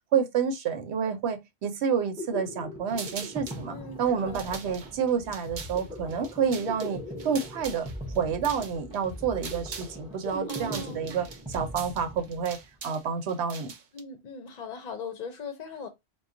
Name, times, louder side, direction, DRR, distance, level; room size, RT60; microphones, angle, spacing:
voice 1, 0.1-7.9 8.2-12.6 12.8-13.7, right 7 dB, 85° right, 0.9 m, -29 dB
sound 1, 2.2-12.7, equal, 5° right, 0.4 m, -40 dB
sound 2, 2.9-3.6 4.2-10.0 10.2-14.0, right 6 dB, 55° right, 0.6 m, -43 dB
voice 2, 3.7-4.8 6.5-6.7 10.5-11.0 13.9-15.9, left 5 dB, 55° left, 0.6 m, -40 dB
2.3 x 2.0 x 3.7 m
omnidirectional pair, 1.1 m